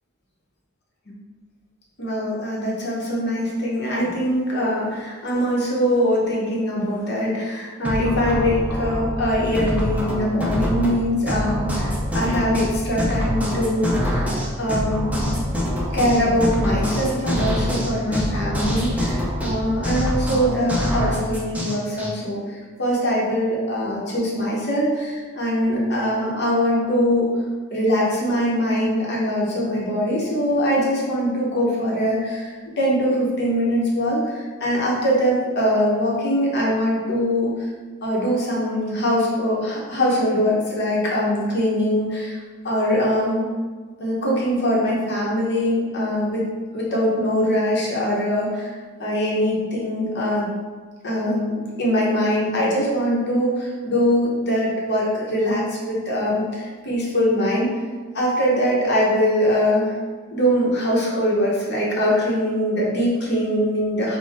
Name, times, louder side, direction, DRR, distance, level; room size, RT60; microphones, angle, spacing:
voice 1, 2.0-14.3 14.6-15.2 15.9-27.3 27.7-37.5 38.0-42.4 42.6-43.5 44.0-46.5 46.7-48.7 49.0-50.5 51.0-57.7 58.1-60.0 60.3-64.2, equal, 55° left, -4 dB, 1.1 m, -22 dB
sound 1, 7.8-22.1, equal, 5° right, 0.6 m, -25 dB
4.5 x 2.4 x 3.6 m, 1.4 s
head